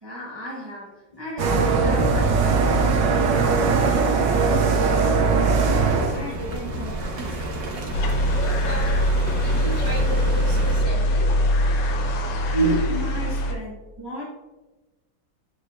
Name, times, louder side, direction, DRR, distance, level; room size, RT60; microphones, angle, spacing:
voice 1, 0.0-3.0 3.3-7.6 12.9-14.2, equal, 15° right, -6 dB, 1.4 m, -36 dB
sound 1, 1.4-6.2, right 4 dB, 80° right, 1.5 m, -20 dB
sound 2, 5.5-10.8, right 1 dB, 55° right, 1.5 m, -31 dB
sound 3, 7.9-13.5, equal, 75° left, 1.5 m, -22 dB
voice 2, 8.3-11.8 12.4-12.9, right 2 dB, 25° left, -6 dB, 2.0 m, -29 dB
8.3 x 5.0 x 2.5 m, 1.2 s
omnidirectional pair, 2.0 m